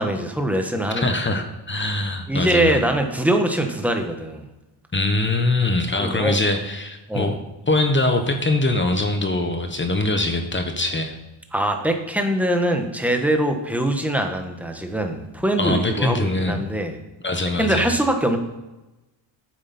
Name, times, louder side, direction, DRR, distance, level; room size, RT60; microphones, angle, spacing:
voice 1, 0.0-1.4 2.3-4.5 6.0-6.4 7.1-7.4 11.5-17.0 17.5-18.4, right 1 dB, 5° right, 4 dB, 1.3 m, -23 dB
voice 2, 1.0-2.8 4.9-7.4 7.7-11.1 15.6-16.6 17.2-17.9, left 2 dB, 25° left, 5 dB, 1.1 m, -22 dB
9.3 x 7.4 x 4.3 m, 1.0 s
cardioid pair, 100°, 50 cm